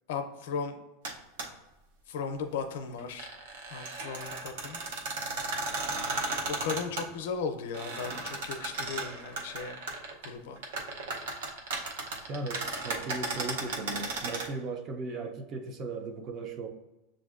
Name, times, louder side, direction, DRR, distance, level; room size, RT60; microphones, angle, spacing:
voice 1, 0.1-0.8 2.1-3.3 3.7-4.8 6.5-9.8 10.2-10.6, left 5 dB, 70° left, 6 dB, 0.5 m, -36 dB
sound 1, 1.0-1.1 1.4-1.5 3.0-7.0 7.7-10.3 10.6-14.5, right 3 dB, 85° right, 0.7 m, -35 dB
voice 2, 12.3-16.7, right 3 dB, 30° right, 6 dB, 0.4 m, -37 dB
6.9 x 2.5 x 2.4 m, 1.0 s
supercardioid pair, 170°, 0 cm